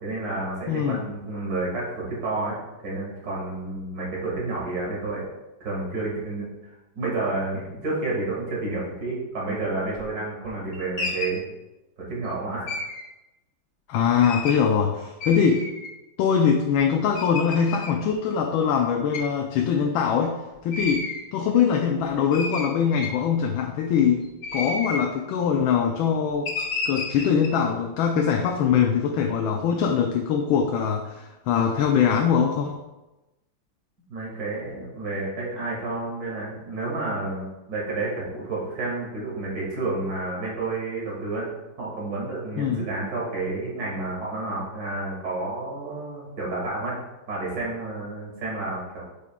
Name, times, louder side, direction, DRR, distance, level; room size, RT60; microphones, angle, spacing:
voice 1, 0.0-2.6 2.8-5.3 5.6-6.5 6.9-11.4 12.0-12.7 34.1-41.5 41.8-47.0 47.3-49.0, right 2 dB, 50° right, -5 dB, 2.3 m, -30 dB
voice 2, 0.7-1.0 13.9-15.7 16.2-20.4 20.6-24.3 24.5-26.5 26.9-32.8 42.6-42.8, left 7 dB, 85° left, 3 dB, 1.4 m, -22 dB
sound 1, 9.9-10.1 10.4-11.4 12.7-13.0 14.2-14.6 15.2-15.9 16.5-16.6 17.2-17.9 19.1-19.3 20.7-21.3 21.9-22.0 22.3-23.4 24.3-25.1 26.5-27.5, left 3 dB, 65° left, 1.8 m, -31 dB
8.3 x 5.0 x 2.3 m, 1.0 s
omnidirectional pair, 2.1 m